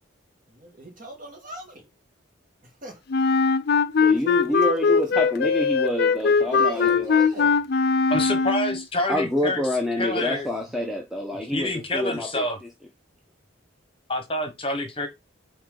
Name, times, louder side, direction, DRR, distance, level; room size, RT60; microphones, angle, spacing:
voice 1, 0.5-1.9 2.6-3.0 4.0-5.4 6.4-7.6 11.4-11.8, right 1 dB, 40° right, 2.3 m, -41 dB
Wind instrument woodwind instrument, 3.1-8.8, left 5 dB, 50° left, 0.4 m, -21 dB
voice 2, 4.0-7.2 9.1-12.4, left 1 dB, ahead, 0.9 m, -27 dB
voice 3, 8.1-9.6 10.0-10.5 11.3-12.6 14.1-15.1, left 1 dB, 25° left, 1.2 m, -27 dB
8.5 x 3.2 x 3.9 m
head